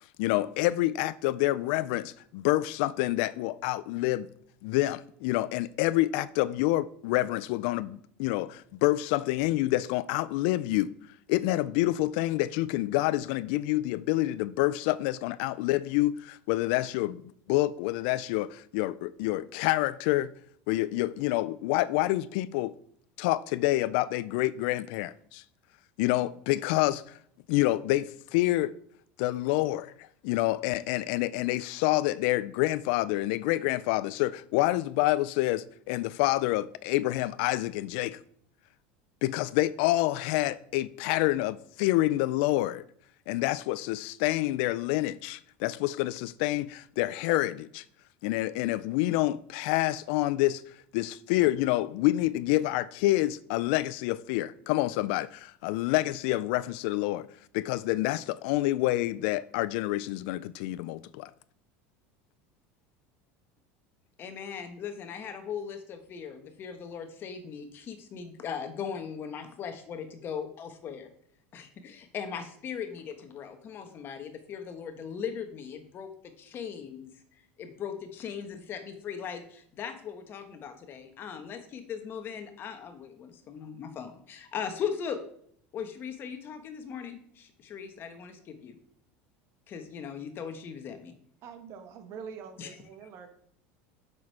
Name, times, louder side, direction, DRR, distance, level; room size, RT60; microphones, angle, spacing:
voice 1, 0.2-4.3 4.6-10.9 11.3-17.2 17.5-20.3 20.7-22.7 23.2-25.4 26.0-27.2 27.5-28.7 29.2-38.2 39.2-42.8 43.3-47.8 48.2-50.6 50.9-57.3 57.5-61.3, left 17 dB, 70° left, 0.4 m, -27 dB
voice 2, 64.2-71.1 71.5-76.1 76.4-77.1 77.6-85.2 85.7-88.8 89.7-91.2 92.6-92.8 93.0-93.1, left 7 dB, 35° left, 1.2 m, -39 dB
voice 3, 91.4-93.3, right 6 dB, 50° right, 1.6 m, -44 dB
7.4 x 6.2 x 4.7 m
supercardioid pair, 135°, 6 cm